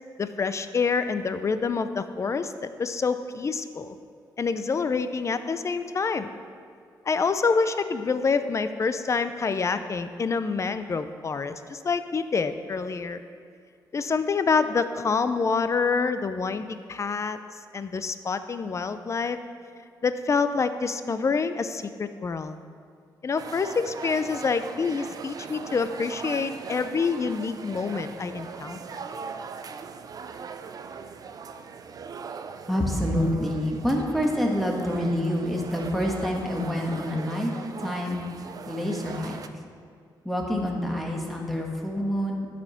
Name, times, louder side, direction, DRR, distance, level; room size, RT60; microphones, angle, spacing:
voice 1, 0.2-4.0 4.4-6.3 7.1-13.2 13.9-17.4 17.7-19.4 20.0-22.6 23.2-29.0, left 5 dB, 35° left, 11 dB, 0.5 m, -27 dB
sound 1, 23.4-39.5, right 5 dB, 50° right, 0.5 m, -40 dB
voice 2, 32.7-37.5 37.8-38.2 38.6-39.4 40.2-42.5, equal, ahead, -1 dB, 1.6 m, -27 dB
11.0 x 5.0 x 5.8 m, 2.3 s
cardioid pair, 90°, 8 cm